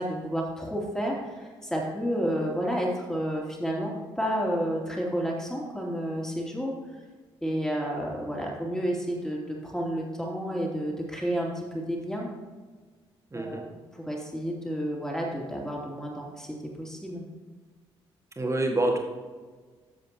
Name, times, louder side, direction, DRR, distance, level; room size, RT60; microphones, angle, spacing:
voice 1, 0.0-6.7 7.4-12.3 13.3-13.6 13.9-16.5 16.8-17.3, equal, 5° left, -2 dB, 2.9 m, -30 dB
voice 2, 13.3-13.7 18.4-19.0, right 2 dB, 20° right, 1 dB, 2.0 m, -26 dB
12.5 x 7.6 x 3.0 m, 1.4 s
figure-of-eight pair, 40°, 14 cm